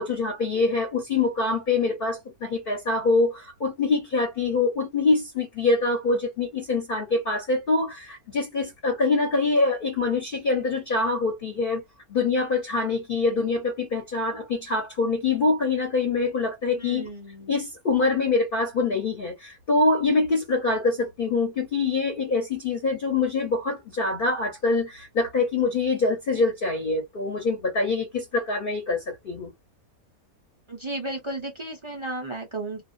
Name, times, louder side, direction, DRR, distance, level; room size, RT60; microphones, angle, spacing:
voice 1, 0.0-11.8 12.1-17.1 17.5-29.5, left 3 dB, 45° left, 0.9 m, -25 dB
voice 2, 16.7-17.6 30.7-32.8, right 2 dB, 45° right, 0.3 m, -34 dB
2.4 x 2.3 x 2.3 m
omnidirectional pair, 1.5 m